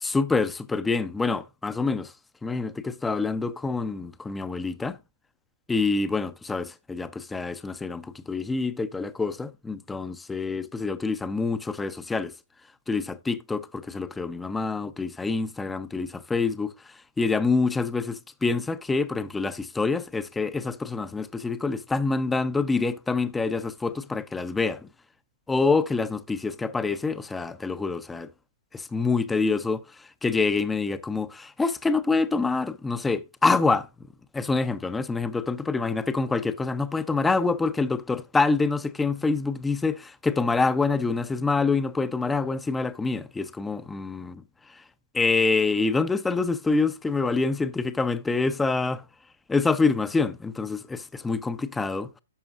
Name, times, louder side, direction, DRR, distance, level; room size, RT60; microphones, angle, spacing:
voice 1, 0.0-2.1 2.4-5.0 5.7-12.3 12.9-24.9 25.5-28.3 28.7-33.9 34.3-44.4 44.7-44.8 45.1-49.0 49.5-52.2, left 4 dB, 10° left, 0.6 m, -26 dB
11.0 x 6.9 x 2.5 m
hypercardioid pair, 130°, 0 cm